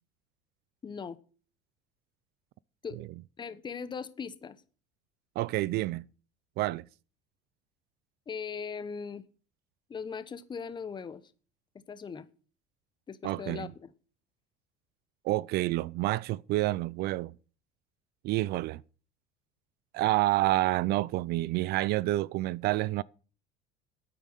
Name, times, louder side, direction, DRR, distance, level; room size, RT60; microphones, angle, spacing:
voice 1, 0.8-1.2 2.8-3.1 3.4-4.6 8.3-9.2 9.9-11.2 11.7-12.3 13.1-13.9, left 6 dB, 25° left, 1.0 m, -39 dB
voice 2, 5.4-6.0 6.6-6.8 13.2-13.7 15.2-17.3 18.2-18.8 19.9-23.0, right 17 dB, 60° right, 0.5 m, -28 dB
9.4 x 9.2 x 6.5 m
supercardioid pair, 115°, 19 cm